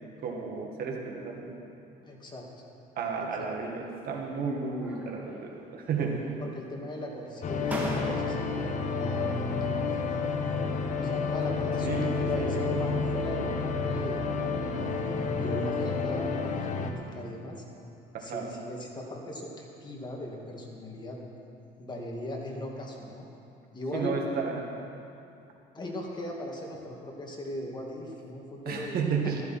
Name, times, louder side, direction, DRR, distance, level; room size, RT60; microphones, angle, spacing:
voice 1, 0.2-1.6 3.0-6.3 11.8-12.6 18.1-18.5 23.9-24.7 28.7-29.4, right 5 dB, 65° right, 0 dB, 2.1 m, -32 dB
voice 2, 2.0-2.5 3.4-3.5 6.4-10.4 11.0-14.2 14.7-17.6 18.2-21.2 21.8-23.2 23.7-24.1 25.7-29.0, left 1 dB, 25° left, -1 dB, 2.3 m, -39 dB
sound 1, 3.8-4.4 4.8-5.6 5.8-6.6 7.2-7.3 7.7-8.6, right 1 dB, 10° right, 2.7 m, -39 dB
sound 2, 7.4-16.9, left 4 dB, 45° left, 1.2 m, -30 dB
14.5 x 14.0 x 4.4 m, 2.7 s
cardioid pair, 110°, 17 cm